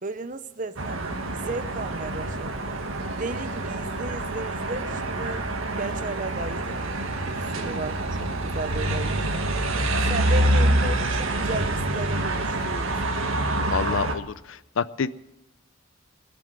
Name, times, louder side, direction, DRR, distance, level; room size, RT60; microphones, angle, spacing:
voice 1, 0.0-2.6 3.1-5.5 5.8-9.5 10.1-13.0, right 2 dB, 40° right, 12 dB, 0.7 m, -35 dB
sound 1, 0.8-14.1, right 1 dB, 80° right, 1.7 m, -26 dB
voice 2, 13.7-15.1, left 6 dB, 70° left, 17 dB, 0.5 m, -28 dB
20.0 x 7.1 x 10.0 m, 0.94 s
head